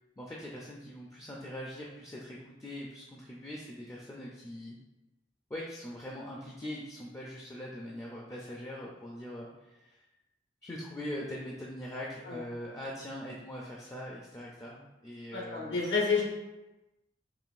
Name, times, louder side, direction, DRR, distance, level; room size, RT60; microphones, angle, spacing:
voice 1, 0.2-4.8 5.5-10.0 10.6-15.8, left 1 dB, 15° left, -3 dB, 0.4 m, -42 dB
voice 2, 15.3-16.2, left 5 dB, 80° left, -4 dB, 1.2 m, -29 dB
4.7 x 3.0 x 2.5 m, 1.1 s
head